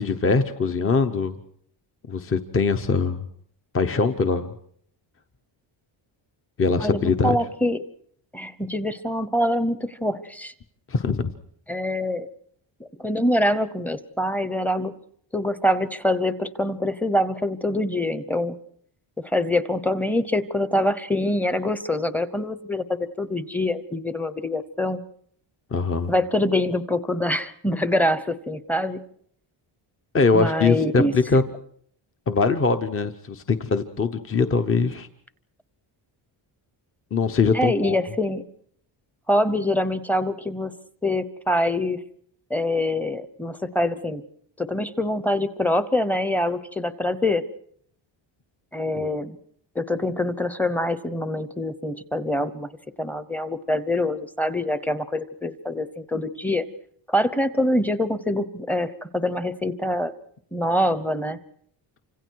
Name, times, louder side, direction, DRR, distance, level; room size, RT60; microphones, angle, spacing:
voice 1, 0.0-1.4 2.1-3.2 3.7-4.5 6.6-7.4 10.9-11.3 25.7-26.1 30.1-31.4 32.3-35.1 37.1-38.0, left 4 dB, 30° left, 8 dB, 0.9 m, -22 dB
voice 2, 6.8-7.8 8.3-10.5 11.7-12.3 12.8-15.0 15.3-18.5 19.2-25.0 26.1-29.0 30.3-31.1 37.5-38.5 39.3-40.8 41.0-42.0 42.5-44.2 44.6-47.4 48.7-49.4 49.7-52.7 53.0-56.6 57.1-60.1 60.5-61.4, left 1 dB, 5° left, 13 dB, 0.9 m, -25 dB
29.0 x 26.0 x 4.7 m, 0.63 s
cardioid pair, 160°, 46 cm